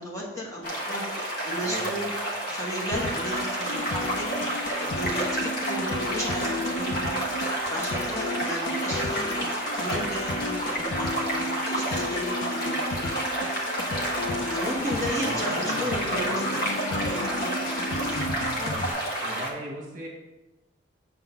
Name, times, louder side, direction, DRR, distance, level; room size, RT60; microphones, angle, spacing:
voice 1, 0.0-2.1 2.5-7.2 7.7-13.2 14.4-16.7 17.1-18.2, equal, 15° left, -5 dB, 1.3 m, -35 dB
sound 1, 0.6-19.5, right 1 dB, 50° left, 1.2 m, -30 dB
voice 2, 1.6-1.9 14.2-14.4 15.2-16.4 17.9-18.2 18.5-18.9 19.2-20.1, right 1 dB, 40° right, -1 dB, 1.3 m, -38 dB
sound 2, 2.9-18.9, left 1 dB, 65° left, 0.5 m, -33 dB
7.1 x 3.7 x 5.8 m, 1.0 s
head